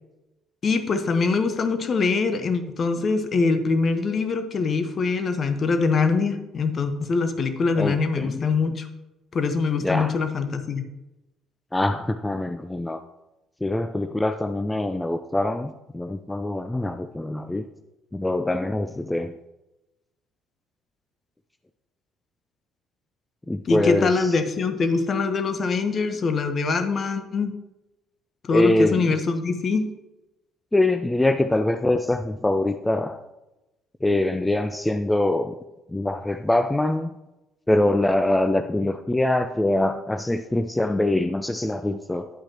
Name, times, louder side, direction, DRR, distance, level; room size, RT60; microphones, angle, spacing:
voice 1, 0.6-8.9 9.3-10.8 23.7-27.5 28.4-29.9, left 4 dB, 45° left, 8 dB, 1.0 m, -23 dB
voice 2, 7.8-8.4 9.8-10.1 11.7-13.0 13.6-17.6 18.1-19.3 23.5-24.3 28.5-29.1 30.7-33.2 34.0-35.5 35.9-37.1 37.7-42.3, left 1 dB, 10° left, 9 dB, 0.5 m, -24 dB
9.9 x 8.7 x 2.9 m, 0.99 s
figure-of-eight pair, 50°, 0 cm